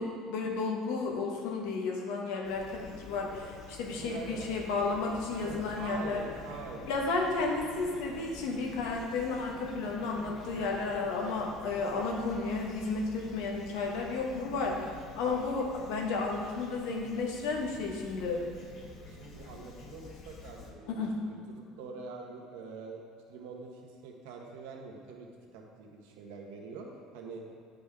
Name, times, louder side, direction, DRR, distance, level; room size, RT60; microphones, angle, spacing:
voice 1, 0.0-6.2 6.9-18.4 20.9-21.2, left 3 dB, 80° left, 0 dB, 1.3 m, -33 dB
Fowl / Chirp tweet, 2.4-20.7, left 3 dB, 55° left, 1.0 m, -49 dB
voice 2, 4.0-4.5 5.4-7.0 15.1-15.4 19.1-21.4 21.8-23.0 23.3-27.4, right 4 dB, 85° right, 0 dB, 1.1 m, -45 dB
9.7 x 5.2 x 3.5 m, 2.2 s
supercardioid pair, 115°, 0 cm